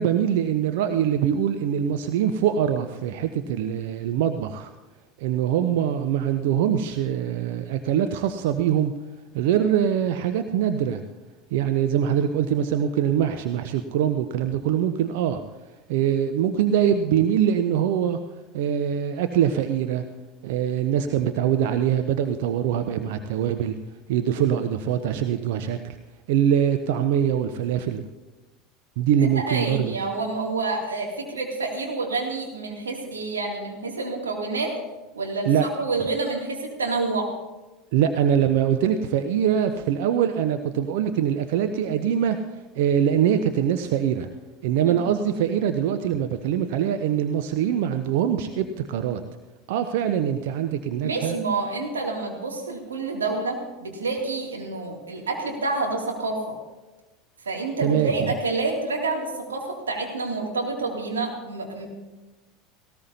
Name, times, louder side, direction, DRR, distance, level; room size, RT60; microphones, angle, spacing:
voice 1, 0.0-4.7 5.2-8.9 9.3-11.0 11.5-15.4 15.9-18.2 18.5-20.0 20.4-23.8 24.1-26.0 26.3-28.0 29.0-30.0 35.5-35.7 37.9-42.4 42.8-44.3 44.6-49.2 49.7-51.4 57.8-58.3, right 9 dB, 60° right, 8 dB, 0.7 m, -23 dB
voice 2, 29.2-34.7 35.1-37.3 44.9-45.1 51.0-56.6 57.4-61.9, right 3 dB, 80° right, 0 dB, 2.6 m, -28 dB
18.5 x 17.5 x 2.8 m, 1.1 s
figure-of-eight pair, 75°, 0 cm